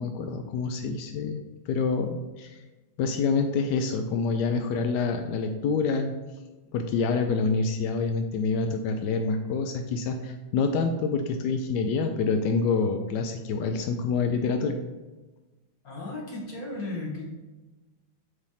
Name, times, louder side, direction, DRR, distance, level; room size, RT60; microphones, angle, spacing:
voice 1, 0.0-2.6 3.0-6.1 6.7-14.8, left 4 dB, 75° left, 5 dB, 1.0 m, -27 dB
voice 2, 15.8-17.2, left 2 dB, 45° left, -4 dB, 2.2 m, -35 dB
8.2 x 3.4 x 5.6 m, 1.2 s
omnidirectional pair, 2.3 m